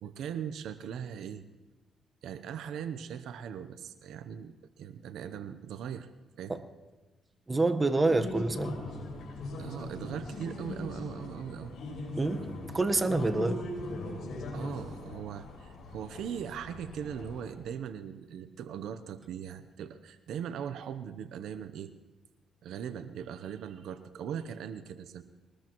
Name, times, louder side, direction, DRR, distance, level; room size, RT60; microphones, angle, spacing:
voice 1, 0.0-1.4 2.2-6.1 6.4-6.5 9.6-11.8 13.4-13.5 14.5-21.9 22.6-25.2, right 8 dB, 75° right, 11 dB, 0.7 m, -40 dB
voice 2, 7.5-8.8 12.2-12.5 12.7-13.6, right 2 dB, 20° right, 7 dB, 1.1 m, -27 dB
sound 1, 8.1-17.5, left 2 dB, 70° left, 5.7 m, -40 dB
21.5 x 20.0 x 3.0 m, 1.2 s
cardioid pair, 90°, 0 cm